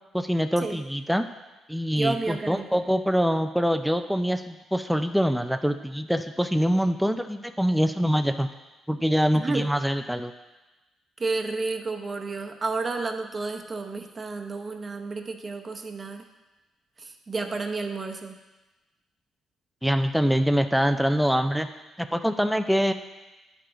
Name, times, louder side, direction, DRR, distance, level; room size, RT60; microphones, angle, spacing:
voice 1, 0.1-1.3 1.7-8.5 8.9-10.3 19.8-21.7 22.0-22.9, equal, ahead, 7 dB, 0.4 m, -24 dB
voice 2, 2.0-2.8 9.3-9.7 11.2-16.2 17.0-18.3, right 3 dB, 30° right, 5 dB, 0.8 m, -31 dB
10.5 x 4.8 x 3.8 m, 1.1 s
cardioid pair, 90°, 0 cm